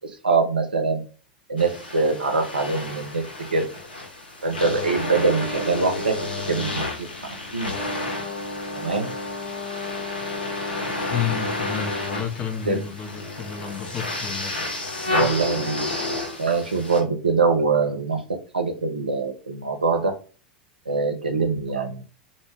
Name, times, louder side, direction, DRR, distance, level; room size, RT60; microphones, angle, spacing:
voice 1, 0.0-1.0 1.5-3.2 3.5-3.6 4.4-7.1 7.5-7.7 8.8-9.1 12.7-12.8 15.1-15.8 16.4-18.2 18.5-20.1 20.9-22.0, right 4 dB, 85° right, 0.6 m, -23 dB
sound 1, 1.6-17.0, left 2 dB, 80° left, 0.8 m, -30 dB
voice 2, 11.1-14.5, left 8 dB, 30° left, 0.6 m, -30 dB
2.1 x 2.1 x 3.3 m
figure-of-eight pair, 90°, 5 cm